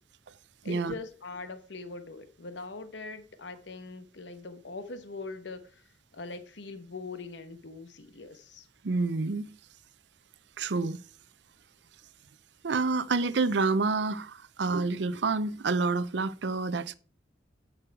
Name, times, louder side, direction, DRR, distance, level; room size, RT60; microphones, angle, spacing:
voice 1, 0.6-8.7, left 3 dB, 75° left, 1.0 m, -42 dB
voice 2, 8.8-9.5 10.6-11.0 12.6-16.9, right 3 dB, 70° right, 0.6 m, -28 dB
10.0 x 6.3 x 4.5 m
head